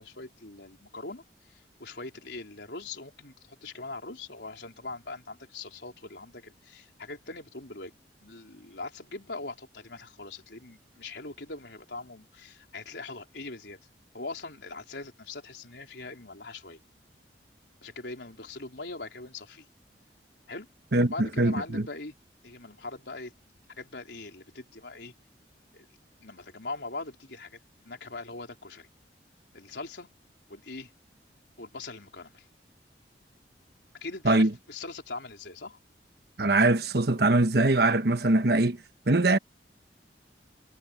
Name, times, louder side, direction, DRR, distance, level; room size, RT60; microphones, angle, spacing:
voice 1, 0.0-7.9 8.2-13.8 14.1-16.8 17.8-19.7 20.5-20.7 21.0-22.1 22.4-23.3 23.8-25.1 25.7-25.9 26.2-27.6 27.8-28.9 29.5-30.1 30.5-30.9 31.6-32.5 34.0-35.8, left 3 dB, 75° left, 4.0 m, -41 dB
voice 2, 20.9-21.8 34.2-34.5 36.4-38.8 39.1-39.4, right 2 dB, 60° right, 1.2 m, -22 dB
head